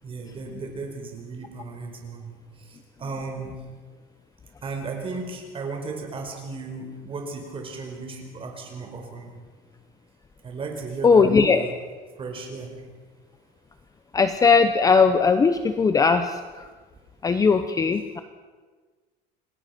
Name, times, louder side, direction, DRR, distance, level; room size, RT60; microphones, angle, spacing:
voice 1, 0.0-2.3 2.7-3.5 4.6-9.4 10.4-11.7 12.2-12.7, right 4 dB, 25° right, 2 dB, 4.9 m, -35 dB
voice 2, 11.0-11.6 14.1-16.7 17.2-18.2, left 5 dB, 15° left, 9 dB, 0.8 m, -19 dB
28.0 x 19.5 x 5.9 m, 1.4 s
cardioid pair, 155°, 20 cm